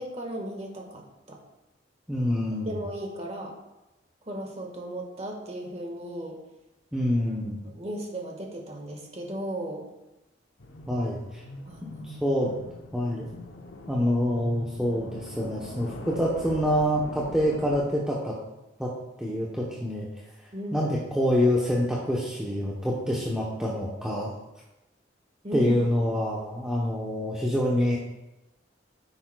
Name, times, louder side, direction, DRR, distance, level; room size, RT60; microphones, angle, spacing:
voice 1, 0.0-1.4 2.6-3.5 4.3-6.4 7.6-9.9 11.7-12.4 20.5-20.9 25.4-25.7, right 1 dB, 35° right, 1 dB, 1.5 m, -36 dB
voice 2, 2.1-2.8 6.9-7.6 10.9-11.4 11.8-12.5 12.9-13.3 13.9-18.4 18.8-18.9 19.2-20.1 20.7-24.4 25.5-28.0, equal, 5° right, -5 dB, 0.8 m, -26 dB
sound 1, 10.6-17.8, left 2 dB, 80° left, 0.8 m, -43 dB
9.9 x 6.9 x 2.3 m, 0.98 s
head